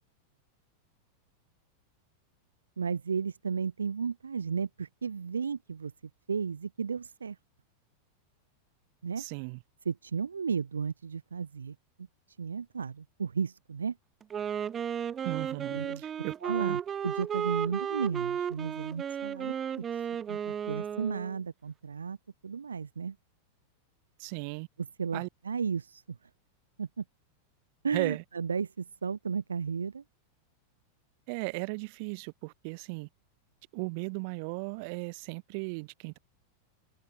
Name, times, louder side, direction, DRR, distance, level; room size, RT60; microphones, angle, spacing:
voice 1, 2.8-5.9 6.3-7.4 9.0-9.2 9.8-12.1 12.4-14.0 15.7-16.0 16.4-19.8 20.3-22.2 22.4-23.2 24.8-26.2 26.8-27.0 27.8-30.0, right 6 dB, 70° right, 0.7 m, -34 dB
voice 2, 9.2-9.6 15.2-16.8 24.2-24.7 25.1-25.3 27.9-28.2 31.3-33.1 33.7-36.2, right 32 dB, 45° right, 0.4 m, -36 dB
Wind instrument woodwind instrument, 14.2-21.4, right 8 dB, 25° right, 1.0 m, -34 dB
open air
figure-of-eight pair, 90°, 0 cm